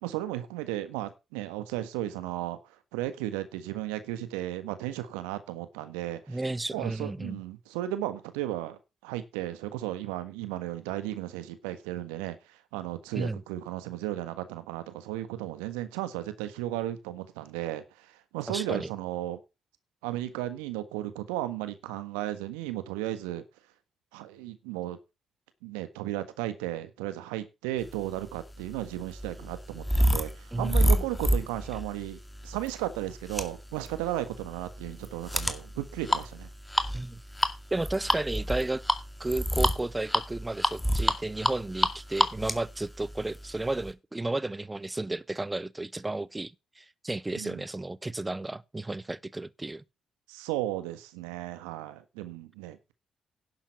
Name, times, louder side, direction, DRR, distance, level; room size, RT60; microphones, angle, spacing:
voice 1, 0.0-2.6 2.9-6.4 6.7-12.4 12.7-19.4 20.0-23.4 24.1-25.0 25.6-36.5 47.3-47.6 50.3-52.9, right 14 dB, 80° right, 1.5 m, -35 dB
voice 2, 6.3-7.4 13.1-13.4 18.5-18.9 30.5-31.0 36.9-37.2 37.7-38.8 39.2-49.8, right 2 dB, 20° right, 1.0 m, -33 dB
sound 1, 28.2-43.9, equal, 10° left, 2.1 m, -29 dB
11.0 x 7.4 x 5.6 m
hypercardioid pair, 45°, 0 cm